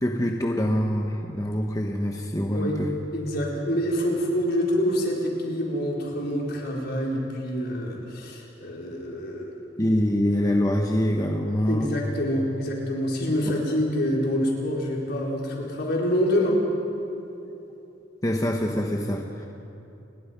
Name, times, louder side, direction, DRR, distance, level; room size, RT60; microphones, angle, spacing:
voice 1, 0.0-2.9 9.8-12.0 18.2-19.5, equal, 20° left, 2 dB, 1.2 m, -25 dB
voice 2, 3.1-9.5 11.7-16.6, equal, 55° left, -2 dB, 4.9 m, -26 dB
29.5 x 21.0 x 5.4 m, 2.9 s
head